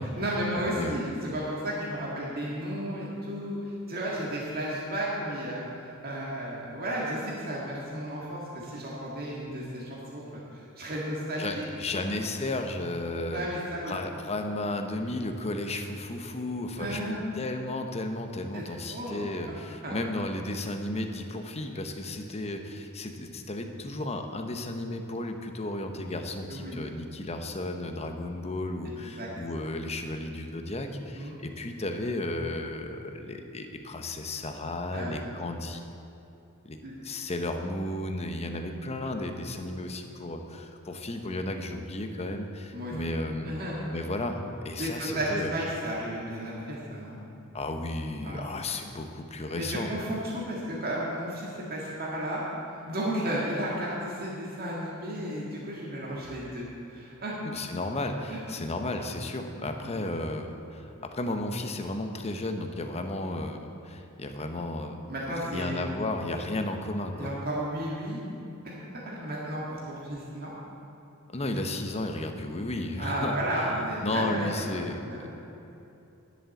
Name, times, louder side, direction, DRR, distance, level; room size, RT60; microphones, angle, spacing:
voice 1, 0.2-11.6 11.9-12.1 13.3-13.9 16.8-17.2 18.5-18.6 18.9-19.5 19.8-20.0 26.5-26.8 28.8-29.3 31.1-31.4 34.9-35.1 36.8-36.9 42.7-42.9 43.4-43.9 44.8-47.2 48.2-48.6 49.5-52.4 52.7-57.4 58.3-58.4 59.8-59.9 65.1-65.9 67.2-68.2 68.6-70.5 73.0-75.3, right 1 dB, 45° right, -5 dB, 1.9 m, -33 dB
voice 2, 11.4-13.5 13.8-35.8 36.6-43.5 43.9-45.5 47.5-49.9 57.4-63.6 63.8-65.0 65.5-67.3 71.3-73.3 74.0-75.3, left 2 dB, 30° left, 5 dB, 0.9 m, -33 dB
11.0 x 7.7 x 7.1 m, 2.9 s
head